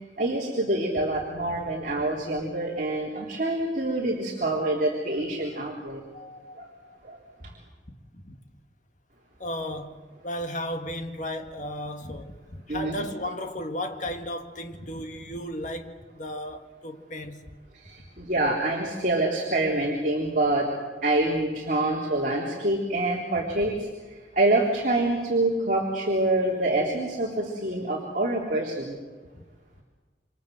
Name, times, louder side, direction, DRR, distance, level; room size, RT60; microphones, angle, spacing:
voice 1, 0.0-6.0 6.6-6.7 7.0-7.2 12.7-13.0 17.7-20.7 21.0-29.0, right 2 dB, 45° right, 3.7 m, -26 dB
voice 2, 6.1-7.2 8.1-8.4 9.4-17.5 29.3-29.4, left 1 dB, 40° left, 1.9 m, -35 dB
28.5 x 26.0 x 7.9 m
head